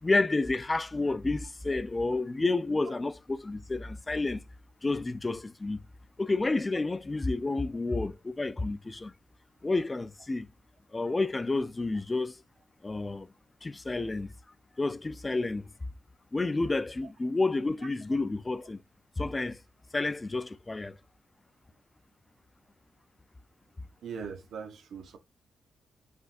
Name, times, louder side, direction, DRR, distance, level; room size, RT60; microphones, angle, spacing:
voice 1, 0.0-4.4 4.8-5.8 6.2-9.1 9.6-10.5 10.9-12.4 12.8-13.3 13.6-14.3 14.8-15.7 16.3-18.8 19.2-19.6 19.9-21.0, left 3 dB, 20° left, 0.3 m, -30 dB
voice 2, 24.0-25.2, right 6 dB, 75° right, 0.7 m, -40 dB
5.0 x 3.4 x 2.5 m
wide cardioid pair, 130°, 0 cm